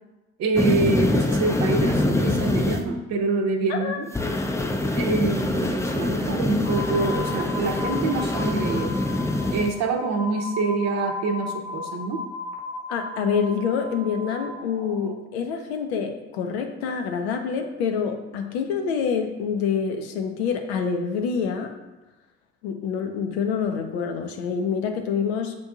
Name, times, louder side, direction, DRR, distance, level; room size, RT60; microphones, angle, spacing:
voice 1, 0.4-4.0 5.0-9.0 9.5-12.2, right 3 dB, 55° right, 4 dB, 0.7 m, -26 dB
sound 1, 0.6-2.8 4.1-9.7, left 2 dB, 10° left, 0.4 m, -24 dB
voice 2, 3.7-4.0 12.9-21.7 22.6-25.5, left 6 dB, 80° left, 5 dB, 0.5 m, -26 dB
sound 2, 6.6-15.1, left 3 dB, 20° right, 0.7 m, -36 dB
6.7 x 2.6 x 2.4 m, 1.1 s
figure-of-eight pair, 45°, 32 cm